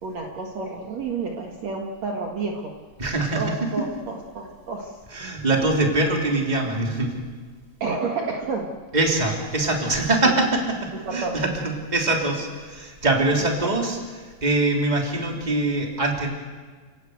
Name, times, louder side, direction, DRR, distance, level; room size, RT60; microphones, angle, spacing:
voice 1, 0.0-2.7 3.4-5.0 5.5-5.7 7.8-8.7 10.2-10.3 11.0-11.4 13.4-13.5, right 4 dB, 55° right, 1 dB, 2.7 m, -30 dB
voice 2, 3.0-3.8 5.1-7.2 8.9-14.0 14.4-16.3, right 2 dB, 10° right, 1 dB, 3.2 m, -23 dB
30.0 x 18.0 x 8.0 m, 1.5 s
omnidirectional pair, 4.0 m